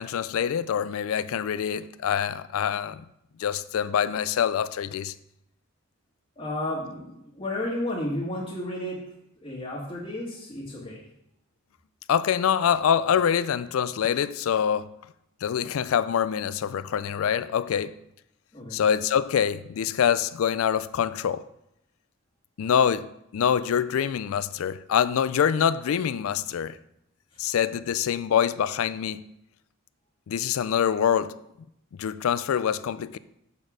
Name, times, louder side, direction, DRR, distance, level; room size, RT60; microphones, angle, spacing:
voice 1, 0.0-3.0 3.4-5.1 12.1-14.9 15.4-17.9 18.7-21.4 22.6-26.8 27.4-29.2 30.3-31.4 32.0-33.2, left 8 dB, 75° left, 0.3 m, -25 dB
voice 2, 6.4-9.0 9.4-11.1 18.5-18.8, left 1 dB, 25° left, 1.4 m, -32 dB
7.1 x 4.3 x 6.1 m
head